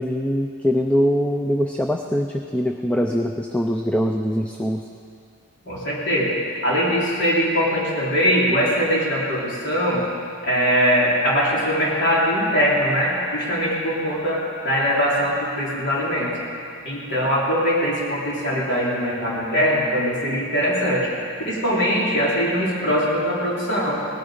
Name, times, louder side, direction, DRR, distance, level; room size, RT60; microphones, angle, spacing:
voice 1, 0.0-4.8, equal, 5° left, 3 dB, 0.4 m, -22 dB
voice 2, 5.7-10.0 10.4-16.3 16.8-21.1 21.5-24.0, equal, 55° left, -6 dB, 3.8 m, -21 dB
18.5 x 11.0 x 5.1 m, 2.5 s
head